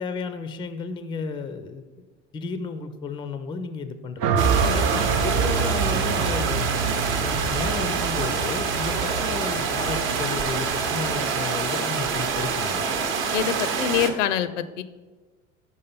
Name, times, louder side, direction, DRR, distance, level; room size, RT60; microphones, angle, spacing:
voice 1, 0.0-2.0 2.3-4.5 5.0-6.8 7.2-12.9, left 4 dB, 15° left, 10 dB, 0.4 m, -33 dB
sound 1, 4.2-12.5, right 5 dB, 40° right, 0.6 m, -27 dB
sound 2, 4.4-14.1, right 5 dB, 55° right, 0.9 m, -26 dB
voice 2, 4.6-5.0 13.3-14.8, left 9 dB, 70° left, 13 dB, 0.5 m, -26 dB
5.4 x 4.9 x 4.2 m, 1.3 s
figure-of-eight pair, 70°, 39 cm